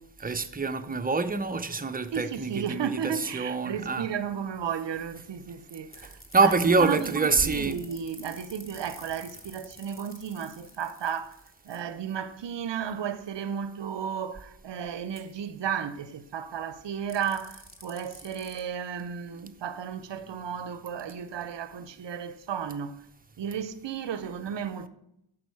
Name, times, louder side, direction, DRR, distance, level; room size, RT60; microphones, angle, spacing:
voice 1, 0.2-4.1 6.0-7.8, right 4 dB, 20° right, 0.6 m, -26 dB
voice 2, 2.1-23.1 23.4-24.9, right 8 dB, 60° right, 0.7 m, -34 dB
sound 1, 5.9-11.8 15.1-15.2 17.1-18.6, left 2 dB, 25° left, 1.4 m, -49 dB
6.2 x 6.0 x 4.7 m
cardioid pair, 40°, 49 cm